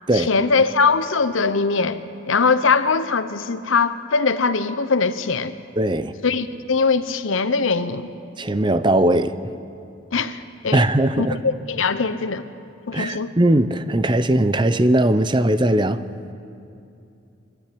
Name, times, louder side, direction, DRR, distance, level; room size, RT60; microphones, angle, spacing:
voice 1, 0.1-2.0 2.3-5.6 6.2-8.1 10.1-10.9 11.2-12.5 12.9-13.3, left 4 dB, 80° left, 12 dB, 0.9 m, -21 dB
voice 2, 5.8-6.1 8.4-9.4 10.7-11.4 12.9-16.0, right 1 dB, 25° right, 12 dB, 0.6 m, -19 dB
23.5 x 13.5 x 8.6 m, 2.7 s
head